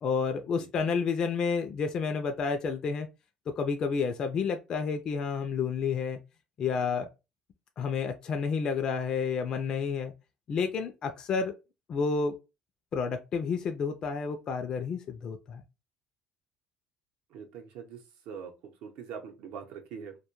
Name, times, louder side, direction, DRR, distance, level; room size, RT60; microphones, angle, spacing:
voice 1, 0.0-3.1 3.6-6.2 6.6-7.1 7.8-10.1 10.5-11.5 11.9-12.3 12.9-15.6, left 5 dB, 35° left, 0.3 m, -30 dB
voice 2, 17.3-20.2, right 7 dB, 75° right, 0.7 m, -43 dB
2.2 x 2.1 x 2.9 m
cardioid pair, 160°, 2 cm